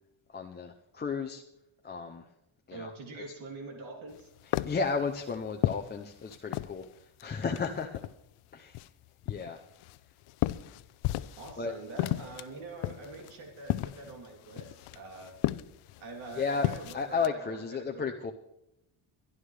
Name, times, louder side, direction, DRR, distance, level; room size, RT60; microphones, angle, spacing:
voice 1, 0.3-1.4 1.8-2.2 2.7-3.2 4.6-6.9 7.2-8.0 8.5-8.8 9.3-9.6 11.6-11.7 16.4-16.7 16.9-18.3, left 5 dB, 20° left, 3 dB, 0.5 m, -33 dB
voice 2, 2.7-4.3 11.4-15.4 16.0-18.1, right 3 dB, 75° right, 1 dB, 3.2 m, -45 dB
sound 1, 4.1-6.8 7.2-8.3 8.7-11.6 11.8-17.3, left 16 dB, 90° left, 0.6 m, -34 dB
23.0 x 11.0 x 3.3 m, 0.86 s
cardioid pair, 175°, 49 cm